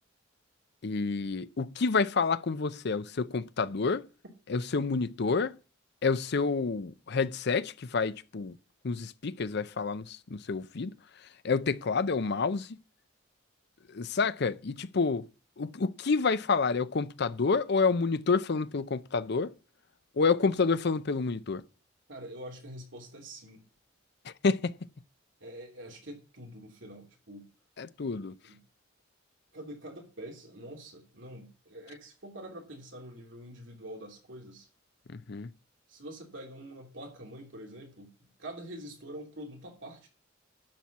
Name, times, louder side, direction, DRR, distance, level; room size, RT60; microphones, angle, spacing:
voice 1, 0.8-4.1 4.5-5.6 6.0-8.6 8.8-10.9 11.4-12.8 13.9-15.3 15.6-19.5 20.2-21.6 24.2-24.7 27.8-28.3 35.1-35.5, left 4 dB, 55° left, 0.6 m, -29 dB
voice 2, 22.1-23.6 25.4-27.5 28.4-28.6 29.5-34.7 35.9-40.1, right 1 dB, 70° right, 3.2 m, -45 dB
12.0 x 4.5 x 8.1 m
head